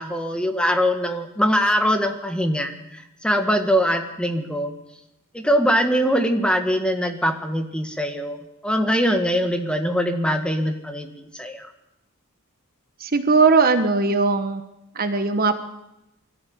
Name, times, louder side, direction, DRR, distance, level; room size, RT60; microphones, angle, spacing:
voice 1, 0.0-4.7 5.3-8.4 8.6-11.1 11.3-11.7, equal, 5° left, 5 dB, 1.8 m, -22 dB
voice 2, 13.0-14.6 14.9-15.6, right 4 dB, 40° right, 9 dB, 1.3 m, -19 dB
23.0 x 14.5 x 9.7 m, 0.89 s
head